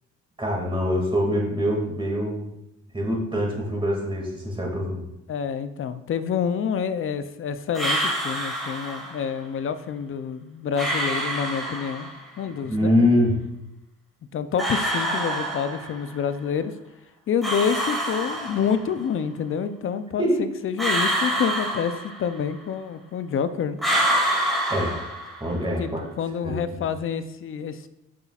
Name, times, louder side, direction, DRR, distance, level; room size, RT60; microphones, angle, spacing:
voice 1, 0.4-2.5 2.9-5.1 12.6-13.3 20.2-20.4 24.7-24.9 25.4-26.0 26.4-26.5, left 1 dB, 15° right, -1 dB, 2.2 m, -24 dB
voice 2, 5.3-12.1 12.4-12.9 14.3-16.7 17.3-20.2 20.6-23.8 25.6-27.9, left 7 dB, 45° left, 11 dB, 0.5 m, -28 dB
sound 1, 7.7-9.2 10.8-12.2 14.6-16.1 17.4-19.0 20.8-22.5 23.8-25.6, right 1 dB, ahead, 2.3 m, -26 dB
7.5 x 5.8 x 2.4 m, 0.88 s
cardioid pair, 90°, 30 cm